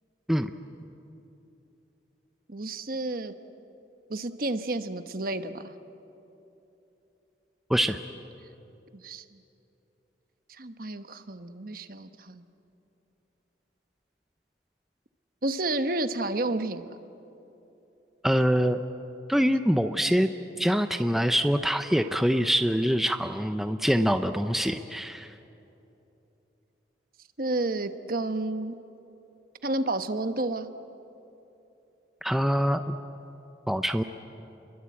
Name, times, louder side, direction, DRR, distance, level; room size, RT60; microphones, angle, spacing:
voice 1, 2.5-3.3 4.1-5.7 8.9-9.2 10.5-12.5 15.4-16.9 27.4-28.7 29.6-30.7, right 2 dB, 50° right, 9 dB, 1.1 m, -31 dB
voice 2, 18.2-18.8 19.3-20.3 20.6-25.3 32.2-33.0 33.7-34.0, equal, ahead, 8 dB, 0.6 m, -24 dB
29.5 x 22.5 x 8.6 m, 3.0 s
head